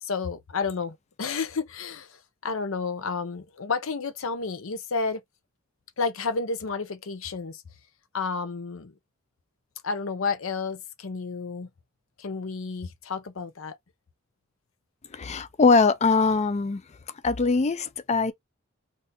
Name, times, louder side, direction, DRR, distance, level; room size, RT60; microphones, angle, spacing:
voice 1, 0.0-5.2 6.0-7.6 8.1-8.9 9.8-11.7 12.2-13.7, left 4 dB, 70° left, 0.7 m, -31 dB
voice 2, 15.1-16.8 17.2-18.3, left 4 dB, 35° left, 0.4 m, -22 dB
3.6 x 2.6 x 2.6 m
head